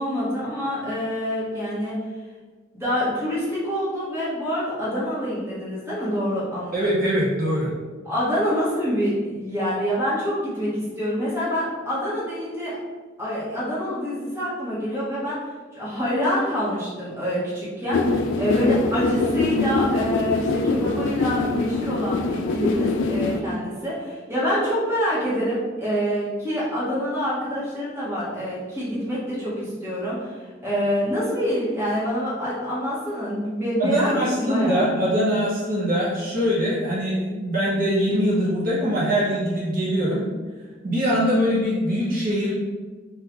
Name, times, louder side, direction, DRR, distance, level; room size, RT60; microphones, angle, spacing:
voice 1, 0.0-2.0 2.7-6.9 8.0-12.8 13.2-15.4 15.7-34.9, equal, 15° right, -8 dB, 1.0 m, -26 dB
voice 2, 6.7-7.7 33.8-40.2 40.8-42.5, equal, 45° right, -7 dB, 0.8 m, -22 dB
sound 1, 17.9-23.4, left 3 dB, 75° left, 0.3 m, -24 dB
3.7 x 2.3 x 2.9 m, 1.4 s
head